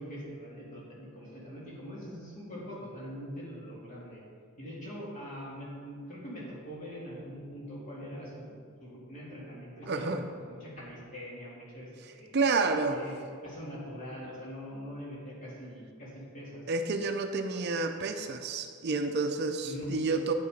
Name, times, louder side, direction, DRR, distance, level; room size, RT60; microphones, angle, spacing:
voice 1, 0.0-4.2 4.6-12.3 12.9-13.2 13.4-16.6 19.6-19.9, equal, 35° left, -6 dB, 2.6 m, -43 dB
voice 2, 9.9-10.2 12.3-13.0 16.7-20.3, right 3 dB, 50° right, 6 dB, 0.5 m, -29 dB
9.5 x 6.7 x 5.1 m, 2.2 s
head